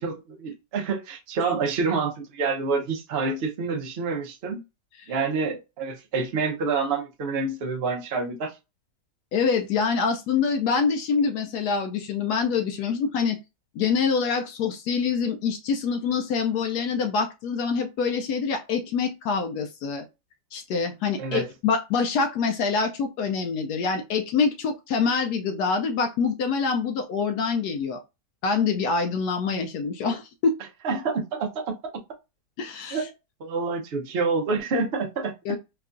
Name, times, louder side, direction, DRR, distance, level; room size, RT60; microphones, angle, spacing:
voice 1, 0.0-4.6 5.1-8.6 21.2-21.5 30.8-31.7 32.9-33.1 33.4-35.6, right 4 dB, 80° right, 0.5 m, -27 dB
voice 2, 9.3-13.4 13.8-20.1 20.5-28.0 28.4-30.5 32.6-33.0 35.5-35.6, left 5 dB, 70° left, 1.0 m, -25 dB
4.6 x 2.2 x 2.4 m
omnidirectional pair, 1.9 m